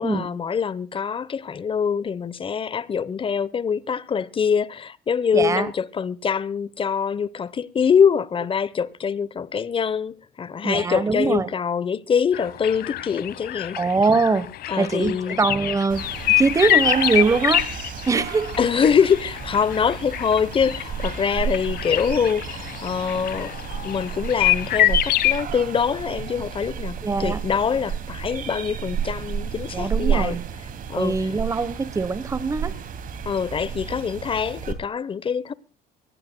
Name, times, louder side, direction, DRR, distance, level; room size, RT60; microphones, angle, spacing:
voice 1, 0.0-13.8 14.7-15.4 18.6-23.6 23.8-30.4 30.9-31.3 33.2-35.5, left 6 dB, 30° left, 0.9 m, -24 dB
voice 2, 5.3-5.7 10.6-11.5 13.8-14.5 14.8-16.0 16.4-17.7 18.1-18.5 27.0-27.4 29.7-30.4 30.9-32.7, right 4 dB, 20° right, 1.1 m, -22 dB
sound 1, 12.3-25.4, left 13 dB, 65° left, 1.0 m, -25 dB
sound 2, 15.9-34.7, right 8 dB, 55° right, 2.5 m, -32 dB
24.0 x 17.0 x 2.2 m
cardioid pair, 110°, 17 cm